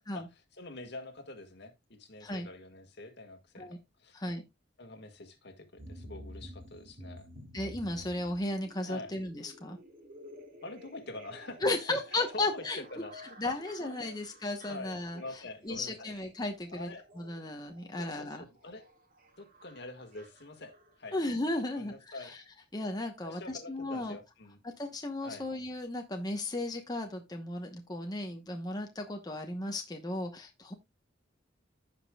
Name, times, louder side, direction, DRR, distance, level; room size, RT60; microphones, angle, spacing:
voice 1, 0.0-4.2 4.8-7.3 8.9-9.1 10.6-12.0 12.3-12.6 12.9-13.4 13.8-14.1 14.7-16.1 16.7-17.1 18.0-18.8 19.4-21.1 21.6-22.3 23.2-24.6 25.2-25.4, left 2 dB, 60° left, 1.7 m, -46 dB
sound 1, 5.8-21.9 22.2-22.3, equal, 45° right, 2.3 m, -52 dB
voice 2, 7.5-9.8 11.6-12.8 13.4-15.2 15.6-16.9 17.2-18.4 21.1-22.4 22.7-24.2 24.6-30.7, left 2 dB, 20° left, 1.0 m, -35 dB
15.5 x 5.2 x 2.3 m
head